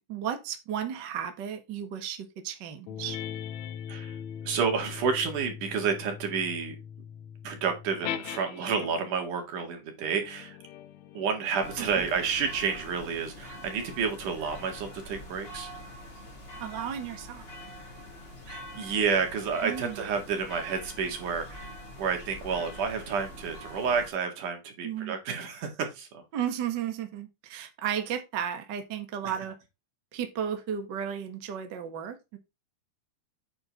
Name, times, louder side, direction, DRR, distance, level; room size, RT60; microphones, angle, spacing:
voice 1, 0.0-3.2 16.6-17.5 19.6-20.0 24.8-25.1 26.3-29.6 30.1-32.4, right 9 dB, 45° right, 1.6 m, -34 dB
sound 1, 2.9-9.3 10.0-14.9, left 9 dB, 75° left, 1.9 m, -41 dB
voice 2, 4.5-6.8 7.4-10.6 11.1-15.7 18.5-26.2 29.2-29.3, right 6 dB, 80° right, 3.6 m, -30 dB
sound 2, 11.6-24.1, equal, 25° left, 1.7 m, -44 dB
8.7 x 4.5 x 4.6 m
omnidirectional pair, 3.5 m